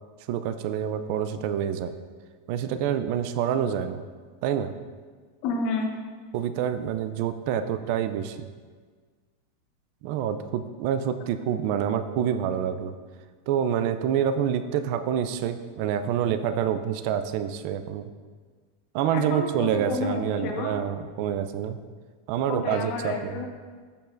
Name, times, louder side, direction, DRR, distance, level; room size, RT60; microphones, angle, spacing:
voice 1, 0.3-1.9 2.5-4.0 4.4-4.7 6.3-8.5 10.0-12.9 13.5-18.1 18.9-21.8 22.3-23.4, right 9 dB, 55° right, 11 dB, 0.4 m, -27 dB
voice 2, 5.4-5.9 19.1-20.7 22.5-23.5, left 3 dB, 50° left, 2 dB, 1.3 m, -30 dB
13.0 x 5.4 x 2.6 m, 1.5 s
supercardioid pair, 135°, 0 cm